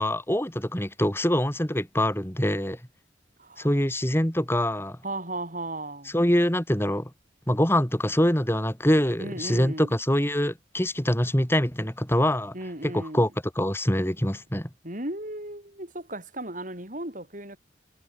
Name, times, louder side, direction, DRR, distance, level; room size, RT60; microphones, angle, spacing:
voice 1, 0.0-2.8 3.6-5.0 6.1-7.1 7.5-12.5 12.8-13.3 13.6-14.7, equal, 10° left, 3.9 m, -24 dB
voice 2, 3.4-3.7 5.0-6.2 9.2-10.0 12.5-13.3 14.8-17.6, right 1 dB, 40° right, 5.5 m, -35 dB
head